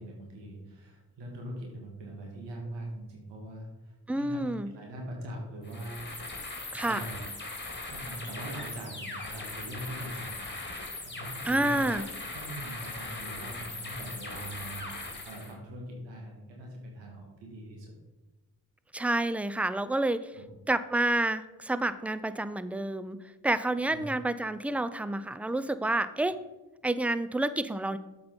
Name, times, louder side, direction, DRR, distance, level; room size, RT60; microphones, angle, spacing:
voice 1, 0.0-6.3 6.8-7.2 7.8-10.4 10.7-17.9 20.3-20.4 23.9-24.0, right 1 dB, 85° right, 0 dB, 1.8 m, -42 dB
voice 2, 4.1-4.7 6.7-7.0 11.5-12.1 18.9-20.3 20.7-23.2 23.4-26.4 26.8-28.0, right 2 dB, 5° right, 13 dB, 0.5 m, -29 dB
sound 1, 5.6-15.5, left 2 dB, 25° left, 2.3 m, -40 dB
7.8 x 5.3 x 5.3 m, 1.1 s
supercardioid pair, 40°, 42 cm